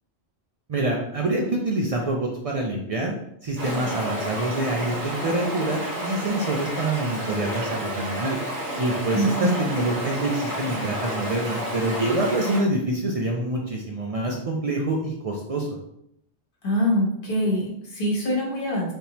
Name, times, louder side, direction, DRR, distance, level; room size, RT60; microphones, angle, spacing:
voice 1, 0.7-3.1 3.4-8.4 8.8-15.7, right 2 dB, 70° right, 0 dB, 0.3 m, -26 dB
Stream, 3.6-12.6, equal, 90° right, 1.8 m, -31 dB
voice 2, 9.1-9.7 16.6-18.9, equal, 50° left, -3 dB, 1.2 m, -24 dB
3.5 x 2.7 x 2.9 m, 0.74 s
omnidirectional pair, 1.2 m